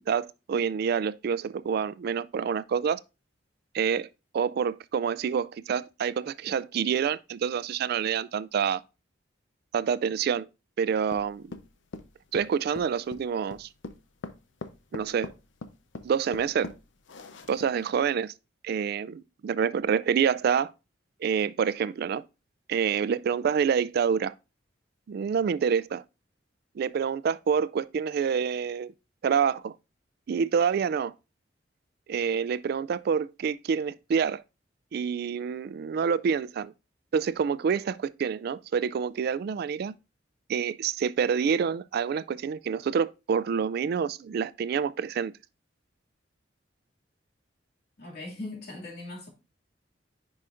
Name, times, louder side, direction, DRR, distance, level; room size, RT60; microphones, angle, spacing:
voice 1, 0.1-3.0 3.7-4.1 4.3-8.8 9.7-10.5 10.8-11.4 12.3-13.7 14.9-15.3 16.0-16.7 17.5-18.3 18.6-20.7 21.2-22.2 22.7-24.3 25.1-26.0 26.8-28.9 29.2-29.7 30.3-31.1 32.1-34.4 34.9-36.7 37.1-39.9 40.5-45.3, right 7 dB, 55° right, 0.3 m, -27 dB
sound 1, 11.1-17.9, left 3 dB, 80° left, 0.7 m, -42 dB
voice 2, 48.0-49.3, left 2 dB, 60° left, 2.3 m, -39 dB
9.9 x 4.9 x 2.5 m
head